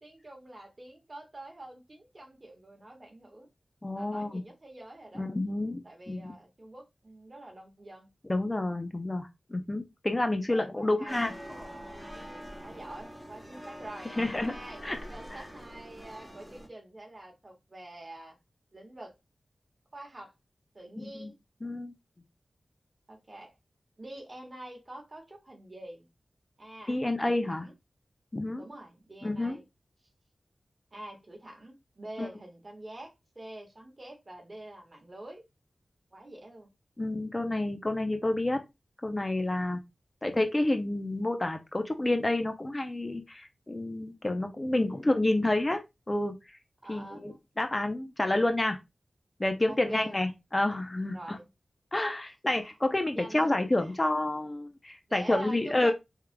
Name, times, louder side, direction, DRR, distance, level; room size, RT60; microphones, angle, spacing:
voice 1, 0.0-3.5 3.9-5.3 5.8-8.1 10.5-11.2 12.6-18.4 18.7-19.2 19.9-20.3 20.7-21.3 23.1-23.5 24.0-26.1 26.6-27.0 27.3-27.7 28.5-29.6 30.9-35.4 36.1-36.7 44.7-45.1 46.8-47.4 49.7-50.1 51.1-51.5 52.0-52.1 52.5-52.7 53.1-53.5 53.8-53.9 55.1-55.9, right 1 dB, 40° right, 1.4 m, -46 dB
voice 2, 3.8-4.4 5.2-6.3 8.3-11.3 14.2-14.6 14.8-15.0 15.3-15.4 21.0-21.3 21.6-21.9 26.9-27.7 28.3-28.6 29.2-29.6 32.2-32.3 37.0-38.6 39.0-39.8 40.2-45.8 46.1-46.4 46.9-48.8 49.4-51.4 51.9-55.9, left 2 dB, 25° left, 0.5 m, -29 dB
sound 1, 11.1-16.7, equal, 5° right, 1.0 m, -45 dB
4.6 x 3.6 x 2.2 m
wide cardioid pair, 80°, 0 cm